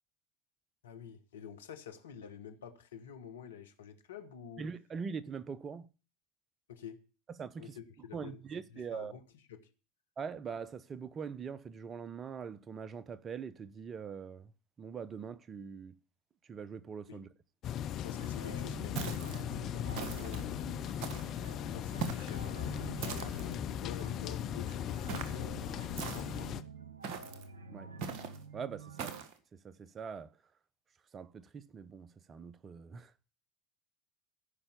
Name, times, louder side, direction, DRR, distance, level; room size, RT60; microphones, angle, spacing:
voice 1, 0.8-4.6 6.7-7.0 7.6-8.4 8.7-9.2 9.5-9.7 17.1-17.2 17.9-20.7 21.5-26.5, left 8 dB, 80° left, 1.3 m, -48 dB
voice 2, 4.6-5.9 7.4-7.8 8.1-9.1 10.2-14.5 14.8-16.0 16.4-17.3 27.7-27.9 28.5-29.2 29.5-30.3 31.1-33.1, right 6 dB, 35° right, 0.8 m, -43 dB
sound 1, 17.6-26.6, left 10 dB, 45° left, 0.7 m, -38 dB
sound 2, 18.1-29.2, right 5 dB, 80° right, 1.4 m, -49 dB
sound 3, 19.0-19.4 19.9-20.4 21.0-21.4 22.0-22.4 23.0-23.5 25.1-25.4 26.0-26.5 27.0-27.4 28.0-28.4 29.0-29.3, right 6 dB, 60° right, 1.7 m, -40 dB
15.0 x 5.7 x 6.8 m
hypercardioid pair, 75°, 0 cm